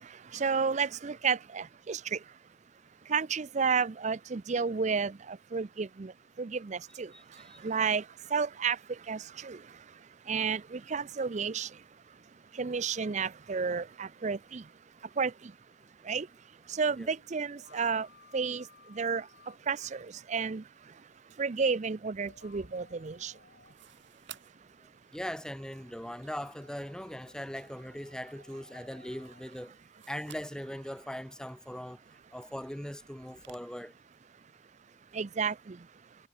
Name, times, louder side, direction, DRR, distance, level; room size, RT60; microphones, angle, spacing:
voice 1, 0.3-2.2 3.1-6.1 6.4-7.1 7.6-8.0 8.3-8.8 9.1-9.6 10.3-11.7 12.6-14.6 15.2-15.3 16.1-16.3 16.7-18.1 18.3-18.6 19.0-19.2 19.7-20.6 21.4-23.3 35.1-35.8, right 5 dB, 35° right, 0.4 m, -31 dB
voice 2, 7.1-7.6 17.0-17.1 25.1-29.7 30.1-32.0 32.3-33.9, equal, 5° left, 0.7 m, -40 dB
sound 1, 17.1-19.6 22.0-23.8 25.8-29.5, left 4 dB, 50° left, 3.8 m, -60 dB
sound 2, 22.1-33.6, right 8 dB, 60° right, 4.0 m, -58 dB
head